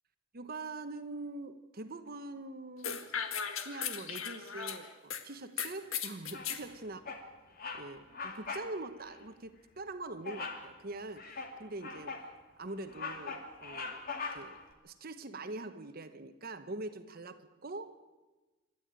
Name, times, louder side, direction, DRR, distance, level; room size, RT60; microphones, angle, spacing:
voice 1, 0.3-3.0 3.6-7.3 7.8-11.2 11.6-12.1 12.6-14.0 14.3-17.9, right 2 dB, 50° right, 10 dB, 1.1 m, -43 dB
sound 1, 2.8-5.2 5.6-6.6, left 7 dB, 90° left, 1.7 m, -37 dB
Bird vocalization bird call bird song, 6.3-6.7 7.1-7.3 7.6-7.9 8.1-8.7 9.0-9.2 10.3-10.7 11.2-12.3 12.7-14.6, left 4 dB, 45° left, 2.5 m, -41 dB
27.0 x 12.0 x 9.0 m, 1.2 s
head